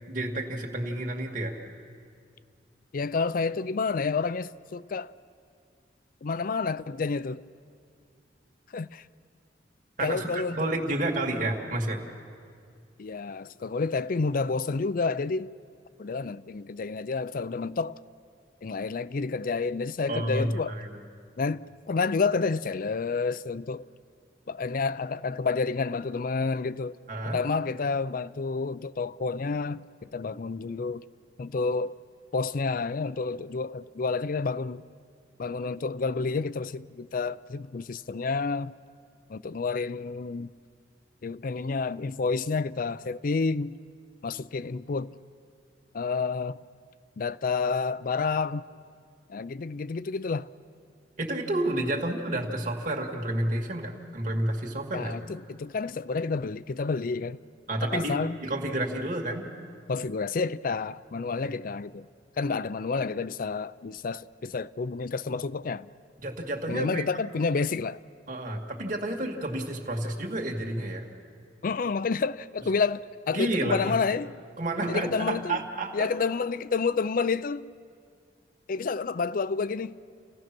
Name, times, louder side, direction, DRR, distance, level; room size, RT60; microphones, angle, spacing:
voice 1, 0.1-1.6 10.0-12.0 20.1-21.0 27.1-27.4 51.2-55.1 57.7-58.2 58.4-59.4 66.2-67.0 68.3-71.1 73.3-73.9 74.6-76.1, right 1 dB, 50° right, 2.1 m, -30 dB
voice 2, 2.9-5.1 6.2-7.4 8.7-9.0 10.0-10.7 13.0-15.5 16.0-18.0 18.6-20.8 21.4-23.9 24.5-27.0 27.3-29.9 30.1-31.0 31.4-32.0 32.3-34.8 35.4-38.7 39.3-40.5 41.2-43.8 44.2-45.1 45.9-46.6 47.2-48.6 49.3-50.5 54.9-57.4 57.8-58.3 59.9-62.1 62.4-65.9 66.7-68.0 71.6-74.4 74.9-75.6 75.9-77.7 78.7-80.0, left 4 dB, 55° left, 0.5 m, -29 dB
29.5 x 16.5 x 6.1 m
head